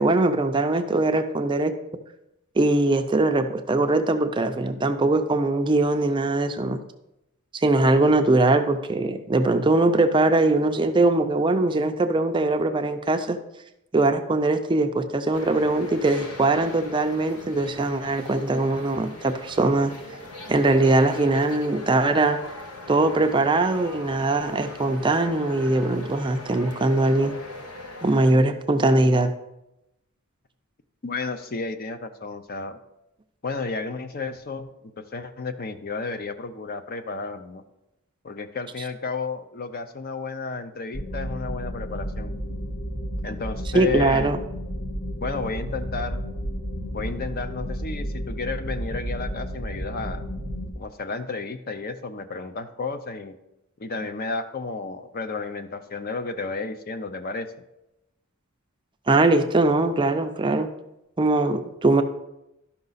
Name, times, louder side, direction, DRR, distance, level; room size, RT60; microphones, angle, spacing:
voice 1, 0.0-1.7 2.6-6.8 7.6-13.4 13.9-19.9 20.5-22.4 22.9-27.3 28.0-29.3 43.7-44.4 59.1-60.7 61.2-62.0, right 2 dB, 20° right, 7 dB, 0.4 m, -21 dB
sound 1, 15.3-28.3, left 2 dB, 85° left, 1.0 m, -40 dB
voice 2, 31.0-32.8 33.4-37.6 38.2-42.3 43.2-44.3 45.2-46.2 46.9-50.2 50.8-53.4 53.8-57.5, left 4 dB, 45° left, 9 dB, 0.6 m, -32 dB
sound 2, 40.9-50.7, equal, 65° left, 1.5 m, -32 dB
12.0 x 5.7 x 4.0 m, 0.90 s
head